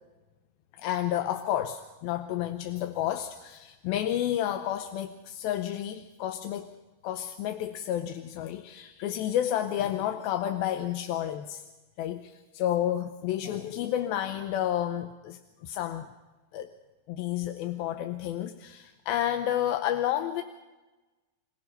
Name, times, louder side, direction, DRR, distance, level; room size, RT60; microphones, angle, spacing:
voice 1, 0.7-6.8 7.0-11.6 12.0-16.1 16.5-16.7 17.1-20.4, left 11 dB, 75° left, 8 dB, 2.4 m, -31 dB
28.0 x 17.0 x 5.5 m, 1.2 s
omnidirectional pair, 4.7 m